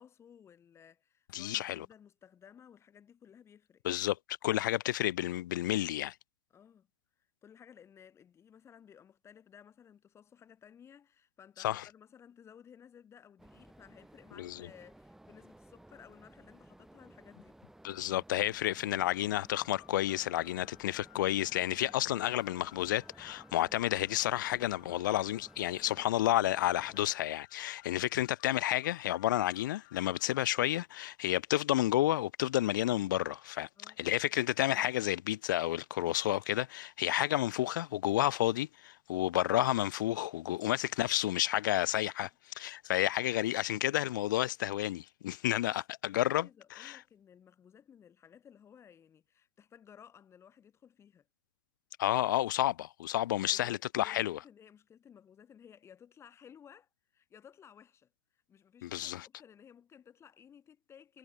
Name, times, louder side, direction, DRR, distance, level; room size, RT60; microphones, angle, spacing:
voice 1, 0.0-3.8 6.5-6.9 7.4-17.6 33.8-34.0 45.6-45.8 46.1-51.3 53.4-61.2, left 8 dB, 25° left, 4.2 m, -57 dB
voice 2, 1.3-1.9 3.8-6.1 11.6-11.8 14.4-14.7 17.8-33.7 34.0-42.3 42.6-46.5 46.8-47.0 52.0-54.4 58.8-59.3, left 14 dB, 80° left, 0.5 m, -31 dB
sound 1, 13.4-27.1, right 1 dB, 5° right, 2.9 m, -57 dB
sound 2, 18.6-30.4, left 24 dB, 50° left, 3.0 m, -60 dB
hypercardioid pair, 115°, 10 cm